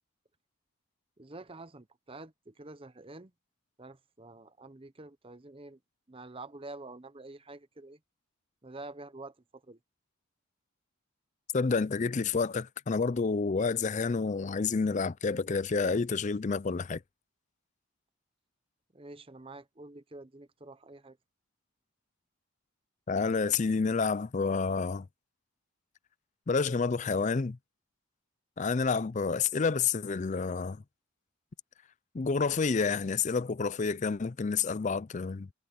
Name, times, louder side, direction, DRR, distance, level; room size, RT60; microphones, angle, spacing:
voice 1, 1.2-3.3 3.8-5.8 6.1-8.0 8.6-9.3 9.7-9.8 18.9-21.2, right 2 dB, 25° right, 0.8 m, -47 dB
voice 2, 11.5-17.0 23.1-25.1 26.5-27.6 28.6-30.8 32.1-35.5, left 4 dB, 35° left, 0.4 m, -29 dB
head